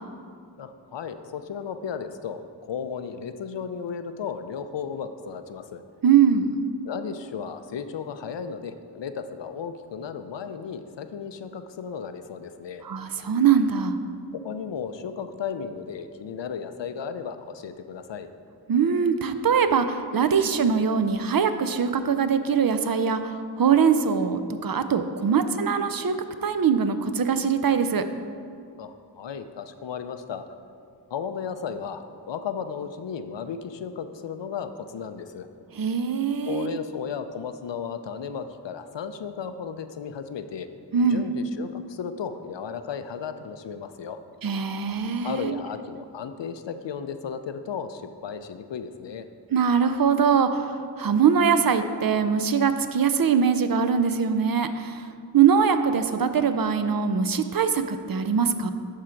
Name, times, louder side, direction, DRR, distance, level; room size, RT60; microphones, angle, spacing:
voice 1, 0.6-5.8 6.8-12.8 14.3-18.3 28.8-30.4 31.1-35.5 36.5-40.7 41.1-44.2 45.2-49.3, left 6 dB, 80° left, 9 dB, 0.5 m, -34 dB
voice 2, 6.0-6.6 12.8-14.0 18.7-26.2 26.4-28.0 35.7-36.8 40.9-41.3 44.4-45.6 49.5-58.7, right 6 dB, 55° right, 9 dB, 0.5 m, -22 dB
11.0 x 3.7 x 4.4 m, 2.3 s
wide cardioid pair, 70°, 43 cm